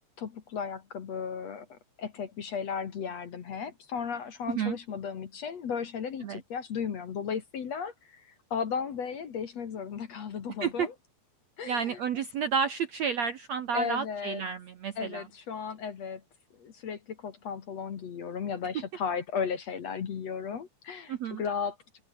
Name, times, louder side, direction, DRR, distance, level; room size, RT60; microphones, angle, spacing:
voice 1, 0.2-10.9 11.6-12.0 13.7-14.4 15.0-16.2 16.6-21.8, left 6 dB, 50° left, 2.6 m, -35 dB
voice 2, 11.7-15.2 21.1-21.4, right 7 dB, 65° right, 1.8 m, -31 dB
omnidirectional pair, 4.5 m